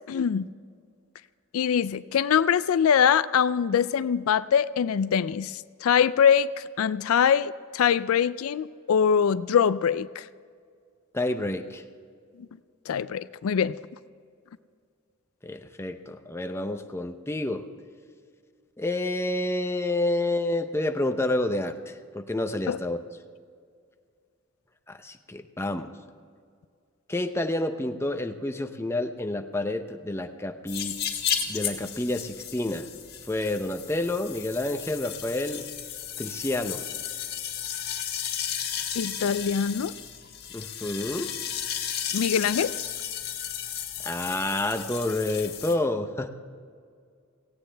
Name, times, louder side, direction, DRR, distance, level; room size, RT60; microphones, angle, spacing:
voice 1, 0.1-0.5 1.5-10.3 12.9-13.7 22.7-22.8 39.0-39.9 42.1-42.7, left 7 dB, 90° left, 16 dB, 0.4 m, -23 dB
voice 2, 11.1-11.8 15.4-17.7 18.8-23.0 24.9-25.9 27.1-31.0 31.5-32.9 33.3-35.7 36.2-36.8 40.5-41.4 44.0-46.3, left 2 dB, 10° left, 6 dB, 0.7 m, -29 dB
sound 1, 30.7-45.8, left 9 dB, 50° left, 1.5 m, -34 dB
17.5 x 16.5 x 3.4 m, 2.1 s
head